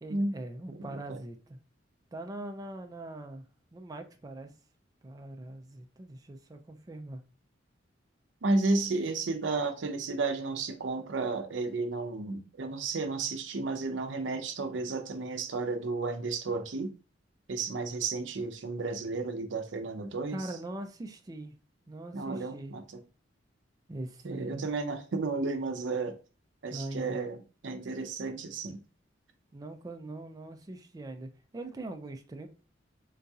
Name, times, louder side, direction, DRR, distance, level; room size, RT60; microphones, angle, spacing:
voice 1, 0.0-1.6 2.1-3.4 3.7-4.5 5.0-7.2 20.3-21.5 21.9-22.7 23.9-24.7 26.7-27.2 29.5-32.5, right 1 dB, 20° right, 0.3 m, -41 dB
voice 2, 8.4-16.9 17.5-20.4 22.1-22.8 24.2-26.2 26.6-27.4 27.6-28.8, right 3 dB, 70° right, 0.6 m, -32 dB
3.8 x 2.7 x 2.3 m
head